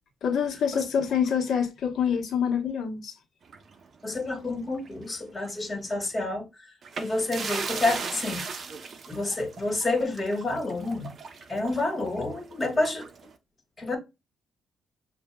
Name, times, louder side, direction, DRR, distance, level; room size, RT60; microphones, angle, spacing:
voice 1, 0.2-3.2, left 7 dB, 65° left, 1.1 m, -26 dB
sound 1, 3.5-5.0 5.4-5.6 6.8-13.3, right 5 dB, 50° right, 0.7 m, -38 dB
voice 2, 4.0-6.6 7.0-8.4 9.1-11.1 11.5-13.0 13.8-14.0, left 2 dB, 25° left, 1.8 m, -29 dB
6.6 x 2.6 x 2.3 m
cardioid pair, 90°, 0 cm